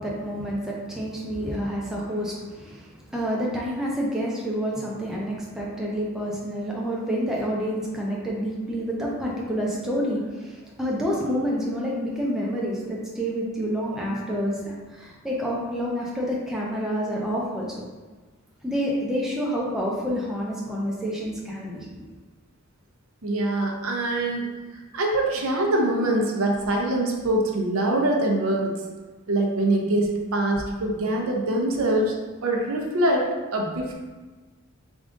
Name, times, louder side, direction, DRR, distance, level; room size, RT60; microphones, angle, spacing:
voice 1, 0.0-17.9 18.6-21.9, equal, ahead, -4 dB, 0.5 m, -28 dB
voice 2, 23.2-24.5 24.9-28.7 29.3-32.1 32.4-33.9, right 1 dB, 80° right, 0 dB, 0.6 m, -24 dB
3.6 x 2.4 x 3.7 m, 1.3 s
head